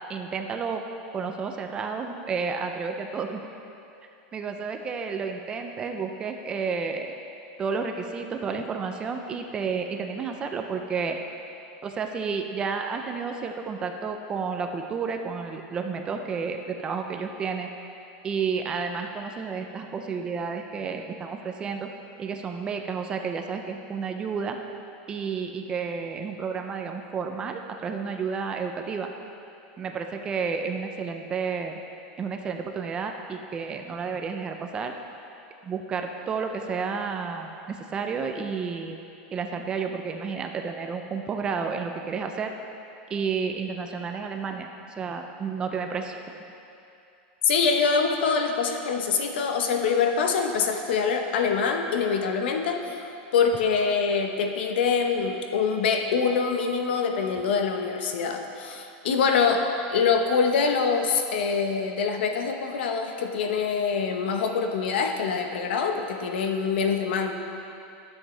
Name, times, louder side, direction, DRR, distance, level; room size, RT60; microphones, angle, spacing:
voice 1, 0.1-0.8 1.1-3.4 4.3-7.1 7.6-11.2 11.8-17.7 18.2-21.9 22.2-24.6 25.1-29.1 29.8-31.8 32.2-34.9 35.6-39.0 39.3-42.5 43.1-44.7 45.0-46.4, right 5 dB, 15° right, 5 dB, 0.4 m, -31 dB
voice 2, 47.4-67.3, left 5 dB, 75° left, 4 dB, 0.9 m, -25 dB
11.5 x 7.5 x 3.2 m, 2.7 s
supercardioid pair, 170°, 6 cm